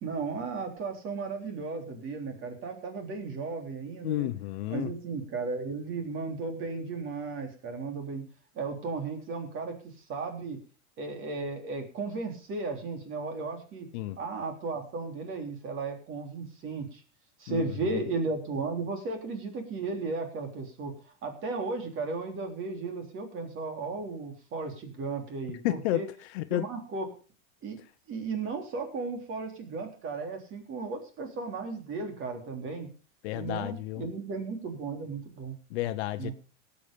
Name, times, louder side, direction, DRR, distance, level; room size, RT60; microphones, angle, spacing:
voice 1, 0.0-4.3 4.7-8.3 8.6-10.6 11.0-13.9 14.2-17.0 17.4-20.9 21.2-26.1 26.5-27.1 27.6-27.8 28.1-32.9 33.3-35.5 36.2-36.3, right 4 dB, 30° right, 3.5 m, -35 dB
voice 2, 4.0-4.9 13.9-14.2 17.5-18.0 25.6-26.0 26.3-26.7 33.2-34.1 35.7-36.3, left 16 dB, 55° left, 1.0 m, -31 dB
18.0 x 8.4 x 5.3 m
supercardioid pair, 150°, 40 cm